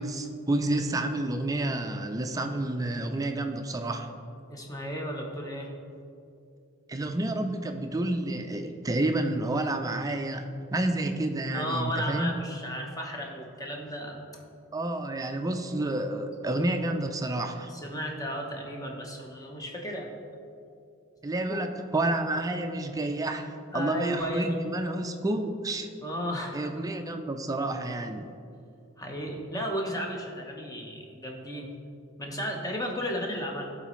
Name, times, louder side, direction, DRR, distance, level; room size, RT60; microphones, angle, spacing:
voice 1, 0.0-4.1 6.9-12.4 14.7-17.7 21.2-25.9 26.5-28.3, right 2 dB, 15° right, 6 dB, 0.4 m, -30 dB
voice 2, 4.5-5.7 11.5-14.4 17.7-20.1 21.5-21.6 23.7-24.6 26.0-26.7 29.0-31.7 32.2-33.7, equal, 15° left, 1 dB, 0.8 m, -34 dB
12.0 x 4.1 x 3.1 m, 2.5 s
head